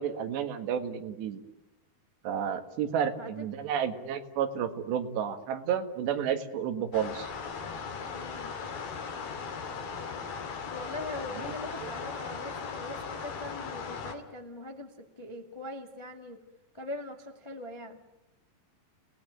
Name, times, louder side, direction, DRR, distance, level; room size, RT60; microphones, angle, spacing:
voice 1, 0.0-1.4 2.2-7.3 11.8-11.9, right 8 dB, 85° right, 8 dB, 3.9 m, -31 dB
voice 2, 2.8-3.4 8.1-8.5 10.7-16.4 16.7-18.0, left 1 dB, 15° left, 4 dB, 0.9 m, -42 dB
sound 1, 6.9-14.1, left 5 dB, 60° left, 4.2 m, -38 dB
29.5 x 19.0 x 9.6 m, 0.97 s
omnidirectional pair, 4.8 m